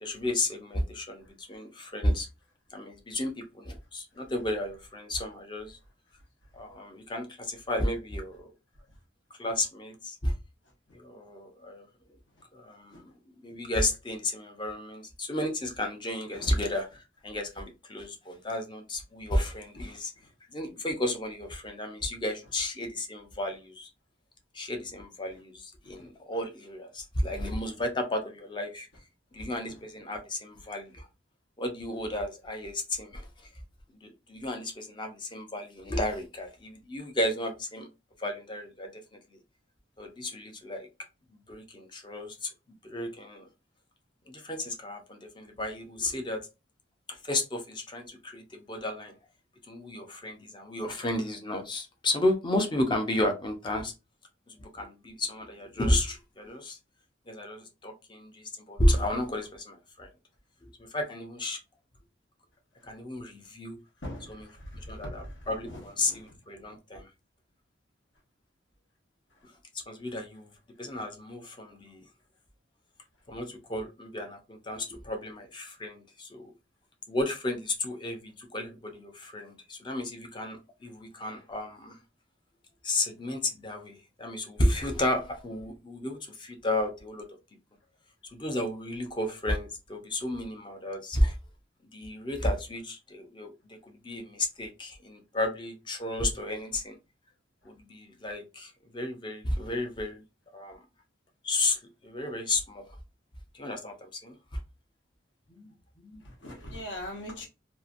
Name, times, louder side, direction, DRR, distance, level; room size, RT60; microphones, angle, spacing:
voice 1, 0.0-2.3 2.7-5.8 6.5-8.5 9.4-10.3 10.9-11.9 12.5-12.9 13.4-16.9 17.2-20.1 20.5-23.9 24.5-28.9 29.3-31.1 31.6-33.2 34.0-37.9 38.2-38.9 40.0-40.9 41.5-42.5 42.8-43.5 44.3-46.4 47.1-49.1 49.7-53.9 54.5-56.8 57.3-60.1 60.9-61.6 62.9-63.8 64.3-64.5 64.9-67.1 69.9-70.5 70.8-72.0 73.3-76.5 77.1-81.9 82.8-87.2 88.3-91.4 91.9-93.5 93.9-97.0 97.7-100.2 100.5-100.8 101.4-102.9 103.5-104.3 105.6-105.7 106.0-106.2, left 1 dB, 25° left, 0.5 m, -32 dB
voice 2, 64.0-64.3 64.8-65.3 65.6-65.8 66.1-66.2 106.4-107.5, left 1 dB, 70° left, 1.1 m, -40 dB
2.8 x 2.5 x 2.5 m
head